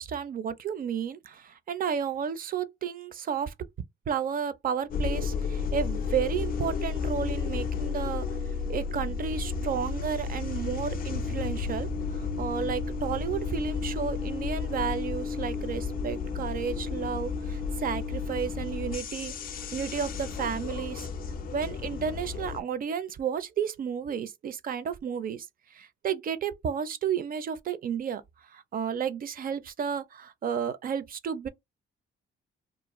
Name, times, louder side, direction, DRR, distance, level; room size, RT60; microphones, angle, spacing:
voice 1, 0.0-3.5 4.1-8.3 8.7-19.3 19.7-21.1 21.5-28.2 28.5-31.5, right 7 dB, 45° right, 0.4 m, -32 dB
sound 1, 4.9-22.6, left 5 dB, 45° left, 0.4 m, -32 dB
2.5 x 2.1 x 2.9 m
cardioid pair, 90°, 20 cm